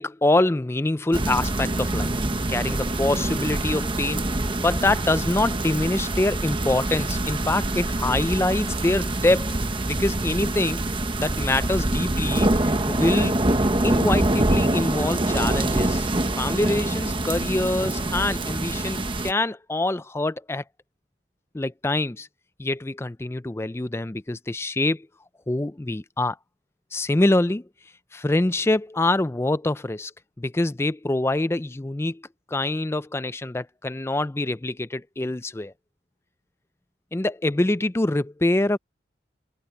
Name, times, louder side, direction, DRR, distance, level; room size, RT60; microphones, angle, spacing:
voice 1, 0.0-2.1 2.5-4.3 4.6-9.6 9.9-10.8 11.2-13.4 13.8-16.1 16.4-20.6 21.5-22.3 22.6-25.1 25.5-26.4 26.9-27.6 28.1-30.1 30.4-32.2 32.5-35.7 37.1-38.8, left 2 dB, 15° left, 0.4 m, -25 dB
sound 1, 1.1-19.3, right 1 dB, 30° right, 1.1 m, -25 dB
head